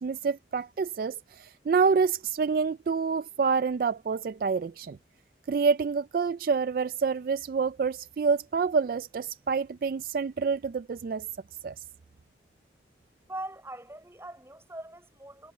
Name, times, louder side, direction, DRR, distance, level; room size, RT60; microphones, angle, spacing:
voice 1, 0.0-5.0 5.5-11.3 11.6-11.7, right 5 dB, 55° right, 0.3 m, -27 dB
voice 2, 13.3-15.5, right 1 dB, 15° right, 6.4 m, -41 dB
head